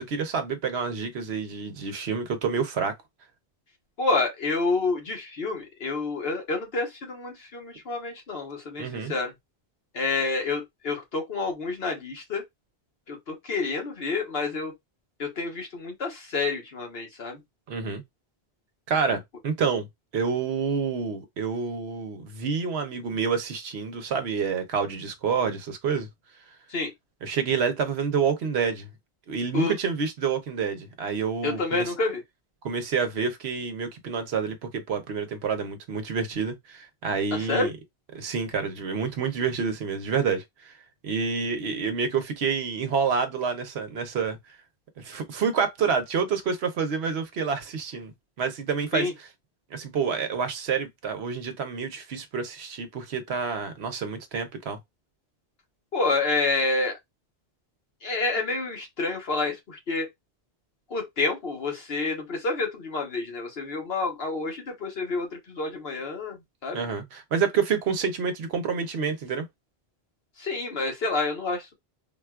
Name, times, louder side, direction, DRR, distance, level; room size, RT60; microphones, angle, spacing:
voice 1, 0.0-2.9 8.8-9.1 17.7-18.0 18.9-19.8 20.1-26.1 27.2-28.9 29.3-31.9 32.6-37.7 38.1-40.7 41.0-44.4 45.0-48.1 48.4-49.3 49.7-54.8 66.7-69.5, right 6 dB, 75° right, 1.0 m, -28 dB
voice 2, 4.0-9.3 9.9-12.4 13.1-14.7 15.2-17.4 26.7-26.9 29.5-29.7 31.4-32.2 37.3-37.7 48.9-49.1 55.9-57.0 58.0-60.1 60.9-65.3 65.5-66.4 66.6-66.8 70.4-71.7, left 3 dB, 65° left, 1.2 m, -28 dB
3.7 x 2.3 x 2.3 m
omnidirectional pair, 1.1 m